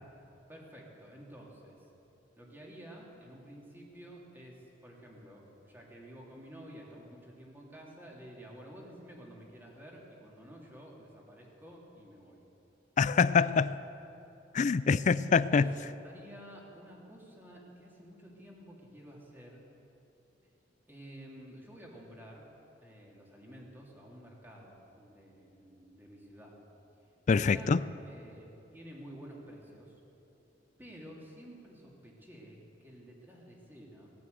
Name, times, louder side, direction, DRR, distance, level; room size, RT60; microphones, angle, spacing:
voice 1, 0.5-1.8 2.4-12.4 15.3-15.7 16.0-19.6 20.9-22.5 22.8-26.6 27.3-27.7 28.0-30.0 30.8-34.1, equal, 10° right, -3 dB, 2.7 m, -51 dB
voice 2, 13.0-13.8 14.5-15.7 27.3-27.8, left 5 dB, 40° left, 17 dB, 0.4 m, -25 dB
18.5 x 9.4 x 8.0 m, 2.9 s
head